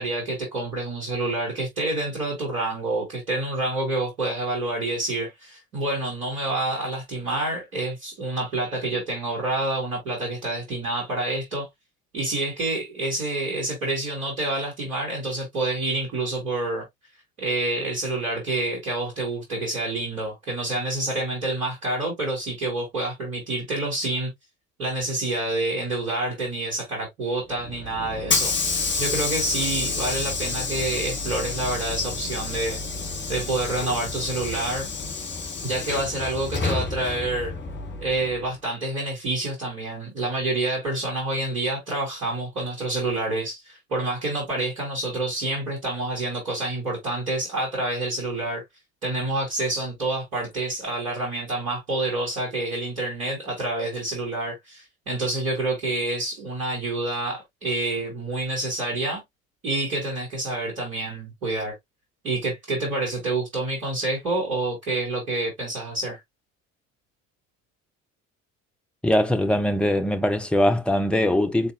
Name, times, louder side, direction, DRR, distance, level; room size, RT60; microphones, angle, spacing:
voice 1, 0.0-11.7 12.1-16.8 17.4-24.3 24.8-28.5 29.0-32.8 33.3-34.9 35.6-37.5 38.0-48.6 49.0-59.2 59.6-61.7 62.2-66.2, right 2 dB, 80° right, 2.2 m, -28 dB
Hiss / Sliding door, 27.6-38.4, left 4 dB, 25° left, 1.4 m, -29 dB
voice 2, 69.0-71.7, left 1 dB, 5° left, 0.7 m, -21 dB
4.0 x 3.5 x 2.7 m
figure-of-eight pair, 55°, 42 cm